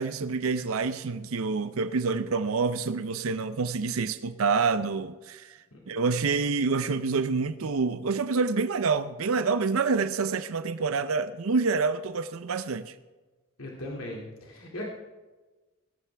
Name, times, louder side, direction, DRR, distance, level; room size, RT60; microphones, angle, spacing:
voice 1, 0.0-5.6 5.9-12.9, right 4 dB, 80° right, 0.6 m, -27 dB
voice 2, 13.6-14.8, left 1 dB, 90° left, 2.4 m, -38 dB
17.0 x 15.0 x 3.4 m
head